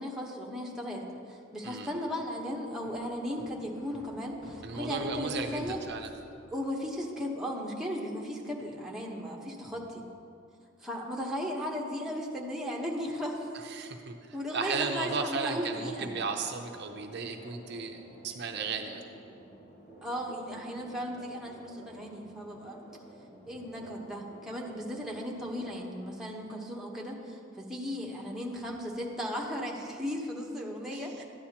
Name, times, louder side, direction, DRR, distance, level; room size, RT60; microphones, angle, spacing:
voice 1, 0.0-5.8 6.5-10.1 10.8-13.5 14.3-16.1 20.0-22.8 23.5-31.2, equal, 5° right, -3 dB, 1.0 m, -36 dB
sound 1, 2.8-6.5, equal, 65° left, 2.5 m, -52 dB
voice 2, 4.6-6.1 13.5-19.0 30.9-31.2, right 4 dB, 60° right, 4 dB, 0.6 m, -35 dB
sound 2, 15.5-26.3, right 1 dB, 40° left, 1.8 m, -52 dB
12.5 x 9.7 x 2.9 m, 2.5 s
head